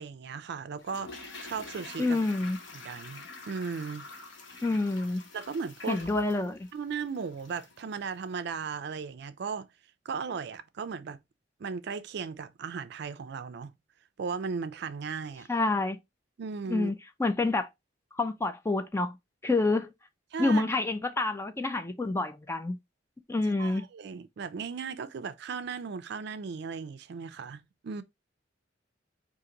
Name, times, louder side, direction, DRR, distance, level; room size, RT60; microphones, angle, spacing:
voice 1, 0.0-2.2 2.7-4.1 5.3-6.0 6.7-9.7 10.1-11.2 11.6-13.7 14.2-15.5 16.4-16.9 20.3-20.6 23.6-28.0, right 5 dB, 60° right, 0.4 m, -36 dB
Toilet flush, 0.8-7.9 8.1-8.2, left 3 dB, 85° left, 0.8 m, -47 dB
voice 2, 2.0-2.6 4.6-5.2 5.9-6.7 15.5-16.0 16.7-17.7 18.2-19.2 19.4-19.9 20.4-22.8 23.3-23.8, left 2 dB, 15° left, 0.4 m, -28 dB
3.8 x 2.5 x 2.8 m
head